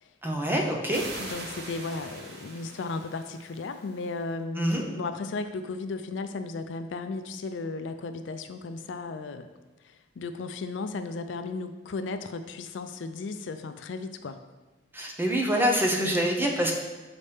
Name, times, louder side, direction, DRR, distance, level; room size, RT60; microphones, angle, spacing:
voice 1, 0.2-1.0 4.6-4.8 14.9-16.7, equal, 10° right, 0 dB, 0.7 m, -25 dB
sound 1, 0.9-4.2, right 2 dB, 60° right, 1.0 m, -42 dB
voice 2, 1.2-9.5 9.8-14.4 16.0-16.3, left 3 dB, 75° left, 9 dB, 0.4 m, -35 dB
7.0 x 4.2 x 3.4 m, 1.2 s
head